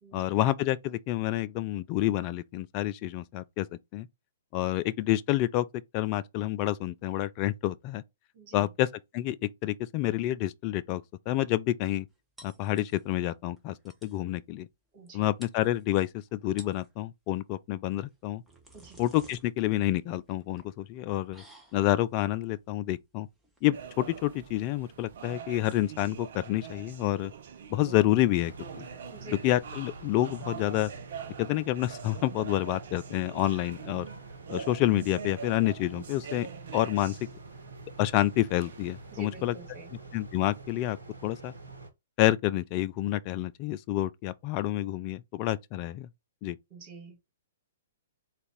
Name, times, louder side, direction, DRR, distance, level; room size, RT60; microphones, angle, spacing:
voice 1, 0.1-3.7 3.9-4.1 4.5-5.7 5.9-8.0 8.5-8.9 9.1-12.1 12.4-13.8 14.0-14.7 15.1-18.4 19.0-21.4 21.7-23.3 23.6-27.3 27.7-28.9 29.4-30.9 31.4-34.1 34.5-36.5 36.7-37.2 38.0-39.5 40.1-41.0 41.2-41.5 42.2-46.1 46.4-46.6, left 14 dB, 35° left, 0.3 m, -28 dB
voice 2, 8.3-8.7 14.9-15.3 18.7-19.0 29.1-29.4 39.1-39.9 46.7-47.3, right 2 dB, 40° right, 2.1 m, -47 dB
sound 1, 12.4-13.3 13.6-13.7 13.9-14.2 15.1-15.2 15.4-16.1 16.4-16.9 18.1-24.7, right 2 dB, 5° right, 0.9 m, -55 dB
sound 2, 23.7-39.5, right 7 dB, 55° right, 0.6 m, -44 dB
sound 3, 28.4-41.9, right 3 dB, 75° right, 1.0 m, -47 dB
3.8 x 2.5 x 3.4 m
figure-of-eight pair, 120°, 0 cm